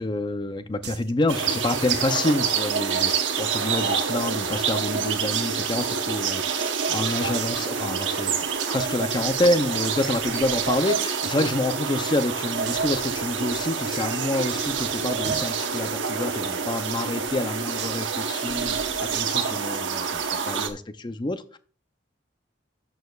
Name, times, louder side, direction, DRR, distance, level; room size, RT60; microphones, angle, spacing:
voice 1, 0.0-8.3 8.7-21.6, left 2 dB, 25° left, 11 dB, 0.5 m, -28 dB
sound 1, 0.8-1.1 1.9-2.2 2.4-2.5 2.9-3.0 3.7-4.4 5.3-5.7 6.2-6.3 7.3-7.8 8.6-8.8 9.8-10.3 11.2-11.3 11.6-11.7 12.0-12.1 12.7-12.9 13.9-14.3 15.2-16.3 17.8-18.1 19.1-19.5, right 9 dB, 60° right, 0.8 m, -37 dB
sound 2, 1.3-20.7, right 6 dB, 90° right, 1.0 m, -27 dB
13.0 x 6.5 x 2.4 m, 0.43 s
head